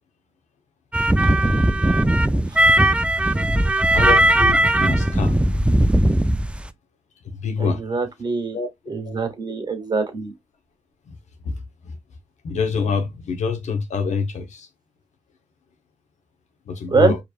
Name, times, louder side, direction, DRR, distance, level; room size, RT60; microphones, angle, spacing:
sound 1, 0.9-6.7, right 1 dB, 10° right, 0.4 m, -18 dB
voice 1, 3.9-5.3 7.3-7.8 8.5-8.7 9.0-9.1 11.4-11.5 11.9-12.0 12.4-14.7 16.7-17.2, left 5 dB, 75° left, 1.0 m, -25 dB
voice 2, 7.6-8.6 8.9-10.3 16.9-17.1, right 4 dB, 35° right, 1.8 m, -23 dB
4.6 x 3.3 x 2.4 m
cardioid pair, 60°, 12 cm